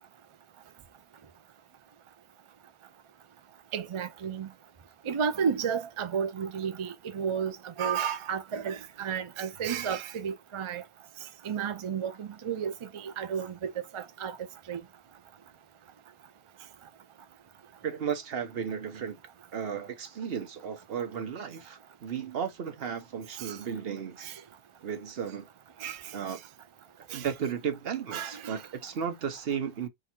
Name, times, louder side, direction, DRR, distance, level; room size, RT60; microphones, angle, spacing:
voice 1, 3.7-4.5 5.1-10.8 11.4-14.4 14.7-14.8 23.4-23.6 24.2-24.3 25.8-26.0 27.1-27.3 28.1-28.6, right 7 dB, 40° right, 0.4 m, -32 dB
voice 2, 17.8-19.2 19.5-24.3 24.8-25.5 26.1-26.4 27.0-29.9, right 7 dB, 70° right, 1.1 m, -34 dB
3.8 x 2.4 x 4.3 m
omnidirectional pair, 1.0 m